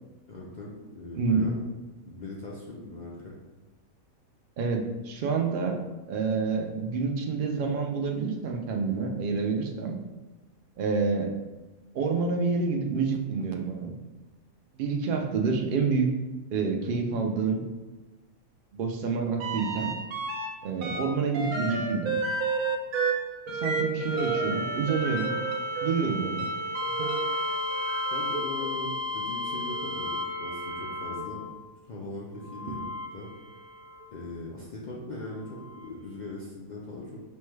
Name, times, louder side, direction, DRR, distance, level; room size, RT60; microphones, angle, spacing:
voice 1, 0.3-1.6 2.0-3.3 28.1-31.4 31.8-32.8 33.1-33.3 34.1-37.2, left 2 dB, 65° left, -4 dB, 0.4 m, -40 dB
voice 2, 1.1-1.5 4.6-5.8 6.1-10.0 10.8-11.3 11.9-13.9 14.8-16.1 16.5-17.6 18.7-19.9 20.6-22.2 23.5-25.3 25.8-26.5 27.0-27.1, right 5 dB, 65° right, 3 dB, 0.5 m, -28 dB
sound 1, 19.4-20.5 20.8-31.6 32.4-34.0 35.7-35.8, right 1 dB, 85° right, 1.0 m, -31 dB
5.3 x 2.2 x 3.1 m, 1.1 s
omnidirectional pair, 1.4 m